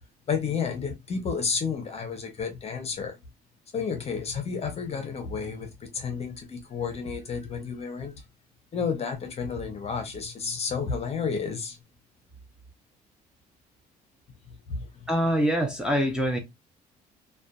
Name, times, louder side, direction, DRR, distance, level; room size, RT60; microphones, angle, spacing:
voice 1, 0.3-3.2 3.7-8.1 8.7-11.8 14.5-15.1, left 5 dB, 40° left, 0.7 m, -31 dB
voice 2, 15.1-16.4, equal, 5° right, 0.6 m, -24 dB
2.5 x 2.2 x 2.2 m
cardioid pair, 110°, 17 cm